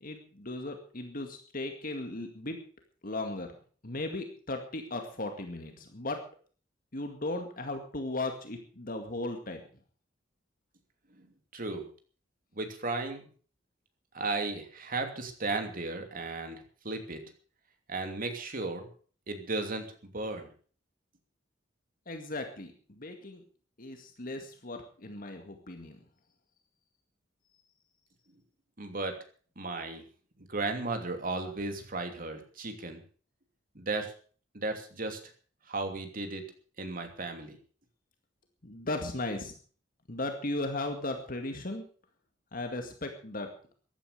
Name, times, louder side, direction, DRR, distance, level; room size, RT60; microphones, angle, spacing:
voice 1, 0.0-2.6 3.0-3.5 3.8-6.2 6.9-9.6 22.1-23.4 23.8-26.0 38.6-39.5 40.1-41.8 42.5-43.5, left 2 dB, 50° left, 5 dB, 2.2 m, -36 dB
voice 2, 11.5-11.9 12.5-13.3 14.1-17.2 17.9-18.9 19.3-19.9 20.1-20.5 28.8-29.2 29.6-30.0 30.5-33.0 33.7-34.1 34.5-35.3 35.7-36.4 36.8-37.6, right 3 dB, 50° right, 6 dB, 2.9 m, -35 dB
15.0 x 11.5 x 6.7 m, 0.43 s
head